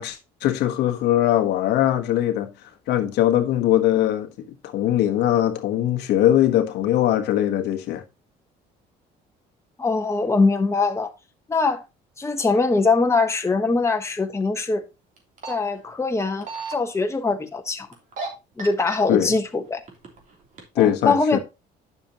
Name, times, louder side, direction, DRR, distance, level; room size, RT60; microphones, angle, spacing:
voice 1, 0.0-2.5 2.9-8.0 19.1-19.3 20.7-21.4, left 12 dB, 80° left, 1.3 m, -21 dB
voice 2, 9.8-11.1 11.5-11.8 12.2-14.8 15.5-17.9 18.6-19.8 20.8-21.4, left 3 dB, 15° left, 1.2 m, -22 dB
sound 1, 15.2-15.5 16.2-16.7 17.9-18.3 18.6-19.0 19.7-20.2 20.6-20.7, right 3 dB, 50° right, 3.2 m, -32 dB
9.6 x 6.6 x 2.9 m
cardioid pair, 110°, 17 cm